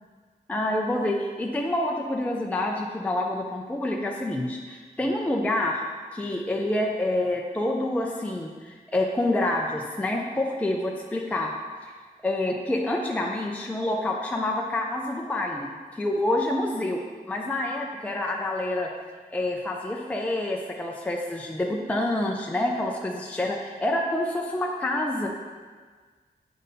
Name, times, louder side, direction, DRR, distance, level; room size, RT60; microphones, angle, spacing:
voice 1, 0.5-5.8 6.1-11.5 11.8-11.9 12.2-17.0 17.3-18.9 19.3-25.3, left 1 dB, 10° left, 0 dB, 0.4 m, -27 dB
8.0 x 5.4 x 2.6 m, 1.5 s
wide cardioid pair, 180°, 16 cm